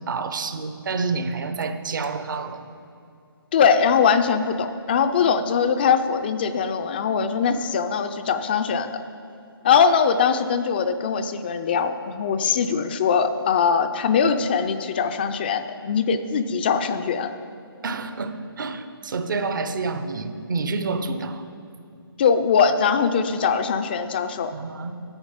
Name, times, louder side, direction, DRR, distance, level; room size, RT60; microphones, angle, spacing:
voice 1, 0.0-2.7 17.8-21.4 24.5-24.9, right 4 dB, 55° right, 9 dB, 0.8 m, -28 dB
voice 2, 3.5-8.9 9.6-17.3 22.2-24.5, left 6 dB, 25° left, 9 dB, 0.4 m, -21 dB
10.5 x 8.2 x 5.2 m, 2.5 s
figure-of-eight pair, 150°, 13 cm